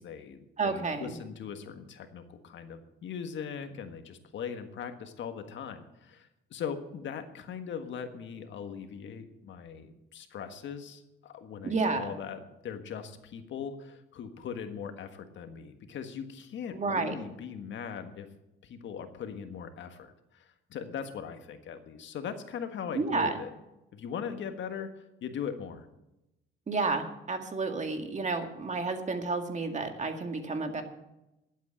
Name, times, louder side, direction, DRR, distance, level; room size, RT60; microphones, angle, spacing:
voice 1, 0.0-18.3 18.6-23.5 23.9-25.9, left 7 dB, 70° left, 7 dB, 1.5 m, -40 dB
voice 2, 0.6-1.2 11.6-12.1 16.7-17.2 22.9-23.4 26.7-30.8, right 4 dB, 35° right, 5 dB, 2.0 m, -31 dB
11.5 x 8.4 x 8.1 m, 0.92 s
cardioid pair, 90°, 20 cm